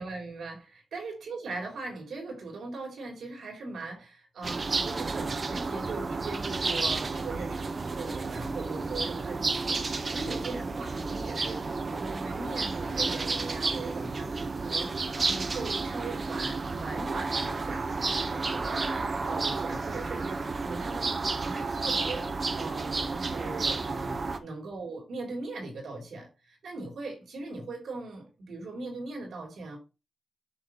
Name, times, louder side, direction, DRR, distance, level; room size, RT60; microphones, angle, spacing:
voice 1, 0.0-15.0 15.2-19.0 19.3-21.2 21.4-29.8, right 3 dB, 90° right, 3.5 m, -40 dB
sound 1, 4.4-24.4, right 3 dB, 50° right, 0.8 m, -31 dB
7.5 x 5.9 x 3.1 m
cardioid pair, 65°, 0 cm